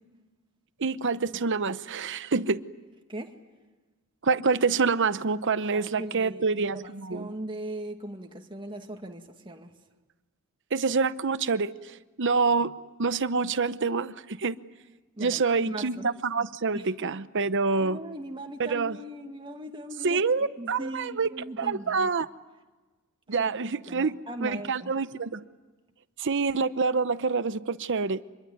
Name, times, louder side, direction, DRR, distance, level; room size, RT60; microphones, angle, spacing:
voice 1, 0.8-2.6 4.2-7.3 10.7-12.7 13.0-14.6 15.2-18.0 18.6-19.0 20.0-21.3 21.6-22.3 23.3-25.4 26.2-28.2, right 4 dB, 55° right, 0.9 m, -27 dB
voice 2, 5.6-9.7 15.2-16.1 16.7-16.9 17.8-20.2 20.6-22.1 23.4-23.5 23.9-24.9, right 1 dB, 20° right, 2.2 m, -39 dB
26.5 x 22.0 x 9.5 m
head